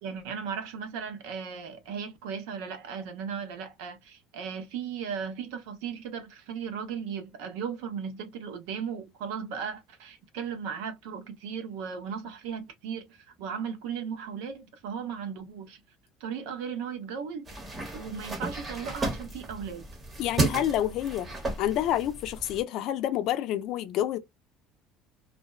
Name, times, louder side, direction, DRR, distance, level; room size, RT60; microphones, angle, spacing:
voice 1, 0.0-15.8 16.2-17.5 17.7-19.9, right 7 dB, 90° right, 0.9 m, -36 dB
sound 1, 17.5-22.6, right 3 dB, 20° right, 0.9 m, -33 dB
voice 2, 20.2-21.3 21.6-24.2, left 12 dB, 55° left, 0.5 m, -28 dB
2.5 x 2.1 x 2.3 m
cardioid pair, 145°, 0 cm